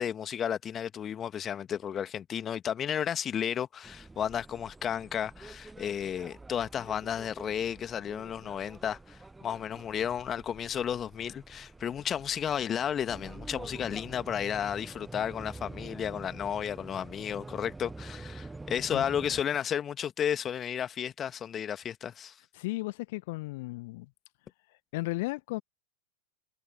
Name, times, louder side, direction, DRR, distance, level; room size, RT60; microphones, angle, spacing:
voice 1, 0.0-22.4, left 9 dB, 25° left, 1.8 m, -33 dB
sound 1, 3.8-19.4, right 3 dB, 10° right, 1.4 m, -47 dB
voice 2, 22.5-24.1 24.7-25.6, left 22 dB, 50° left, 1.5 m, -35 dB
figure-of-eight pair, 90°, 0 cm